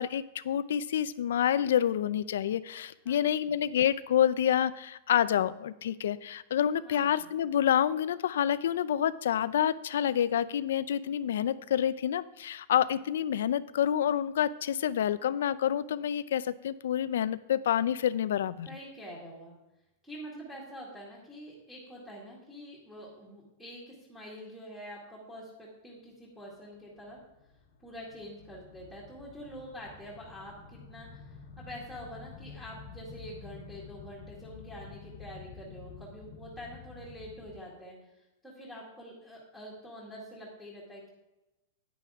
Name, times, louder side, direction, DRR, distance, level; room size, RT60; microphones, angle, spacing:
voice 1, 0.0-18.7, left 10 dB, 80° left, 16 dB, 0.5 m, -28 dB
voice 2, 6.8-7.3 18.7-19.5 20.0-27.2 27.8-38.1 38.4-41.1, equal, 5° right, -6 dB, 2.1 m, -46 dB
sound 1, 26.7-37.6, left 5 dB, 65° left, 1.3 m, -50 dB
10.0 x 9.2 x 3.6 m, 0.94 s
supercardioid pair, 165°, 0 cm